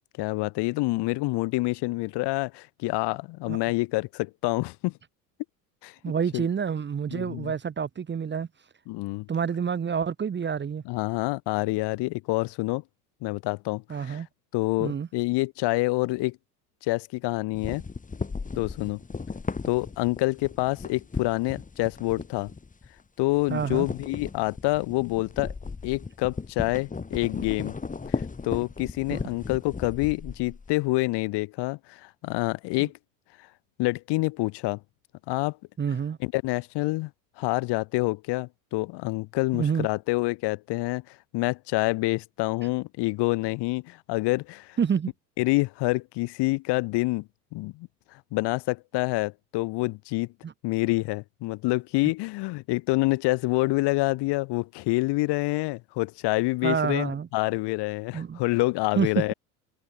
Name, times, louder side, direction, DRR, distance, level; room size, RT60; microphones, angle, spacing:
voice 1, 0.2-4.9 5.8-5.9 6.3-6.5 7.1-7.5 8.9-9.3 10.9-12.8 13.2-14.2 14.5-16.4 16.8-17.8 18.6-19.0 19.7-22.5 23.2-25.5 25.8-27.8 28.1-32.9 33.8-34.8 35.3-35.6 36.2-37.1 37.4-44.8 45.4-47.9 48.3-50.3 50.6-59.3, left 22 dB, 60° left, 3.9 m, -27 dB
voice 2, 6.0-8.5 9.3-10.8 13.9-14.3 14.8-15.1 23.5-23.9 29.1-29.2 35.8-36.2 39.5-39.9 44.8-45.1 50.4-50.5 56.6-57.3 58.1-58.4 59.0-59.3, right 7 dB, 25° right, 1.5 m, -28 dB
sound 1, 17.5-23.0 23.3-30.7, left 4 dB, 15° left, 2.8 m, -36 dB
open air
hypercardioid pair, 85°, 47 cm